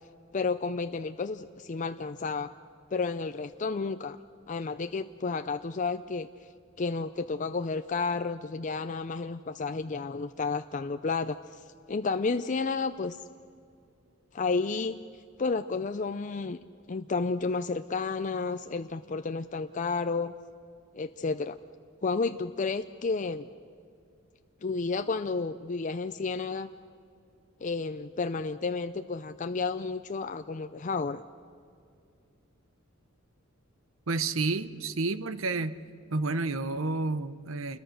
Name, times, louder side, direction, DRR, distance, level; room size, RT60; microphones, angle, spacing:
voice 1, 0.3-2.5 2.9-4.2 4.5-6.3 6.8-11.6 11.9-13.2 14.3-15.0 15.4-16.6 16.9-20.3 20.9-21.6 22.0-23.5 24.6-26.7 27.6-31.2, left 4 dB, 35° left, 9 dB, 0.5 m, -31 dB
voice 2, 34.1-35.8 36.1-37.8, right 3 dB, 75° right, 14 dB, 0.9 m, -30 dB
28.0 x 21.5 x 6.5 m, 2.3 s
head